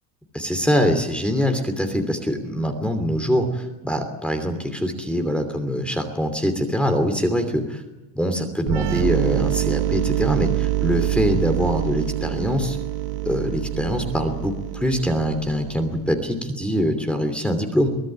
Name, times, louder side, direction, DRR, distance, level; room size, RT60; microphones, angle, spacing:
voice 1, 0.3-7.8 8.1-12.8 13.2-14.5 14.8-17.9, equal, 5° left, 6 dB, 2.9 m, -23 dB
sound 1, 8.7-16.2, right 15 dB, 85° right, 1.5 m, -26 dB
23.5 x 17.5 x 9.0 m, 1.0 s
cardioid pair, 165°, 37 cm